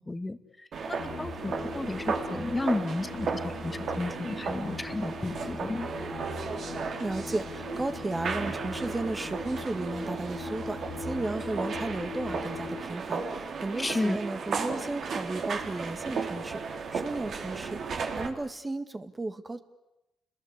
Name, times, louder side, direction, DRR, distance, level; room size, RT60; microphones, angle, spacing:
voice 1, 0.0-5.9 13.8-14.2, left 2 dB, 15° left, 9 dB, 2.0 m, -33 dB
sound 1, 0.7-18.3, right 5 dB, 60° right, 3.7 m, -35 dB
sound 2, 1.0-12.8, left 4 dB, 55° left, 3.1 m, -40 dB
voice 2, 7.0-19.6, right 2 dB, 20° right, 8 dB, 1.9 m, -34 dB
29.5 x 21.5 x 8.4 m, 0.93 s
cardioid pair, 90°, 0 cm